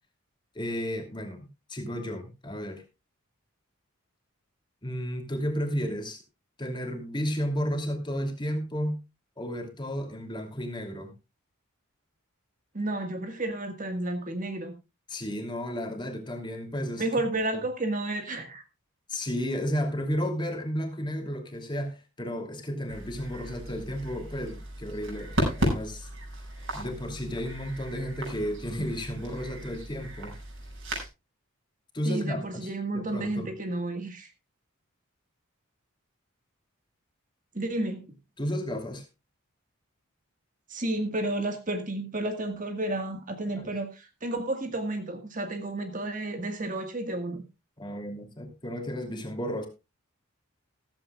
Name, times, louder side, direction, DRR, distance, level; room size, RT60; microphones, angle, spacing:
voice 1, 0.5-2.8 4.8-6.2 6.6-9.0 9.4-11.1 15.1-17.1 19.1-25.3 25.6-26.1 26.7-30.3 31.9-33.5 38.4-39.0 43.6-43.7 47.8-49.7, equal, 20° left, 4 dB, 2.8 m, -33 dB
voice 2, 12.7-14.7 17.0-18.6 32.0-34.3 37.5-38.0 40.7-47.4, right 2 dB, 35° right, 6 dB, 1.6 m, -31 dB
sound 1, 22.9-31.1, equal, 60° right, 6.9 m, -35 dB
15.0 x 14.5 x 2.4 m, 0.27 s
head